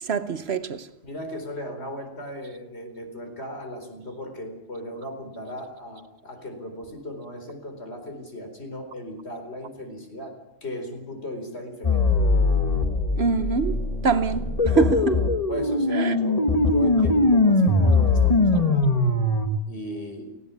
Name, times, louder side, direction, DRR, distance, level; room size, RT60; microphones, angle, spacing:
voice 1, 0.0-0.9 13.2-15.2 15.9-16.1, right 5 dB, 60° right, 1.2 m, -25 dB
voice 2, 1.0-10.4 10.6-12.1 14.8-15.1 15.5-19.0 19.7-20.3, left 1 dB, 60° left, 4.7 m, -36 dB
sound 1, 11.8-19.5, left 2 dB, 30° left, 1.8 m, -21 dB
18.5 x 17.0 x 9.7 m
omnidirectional pair, 1.2 m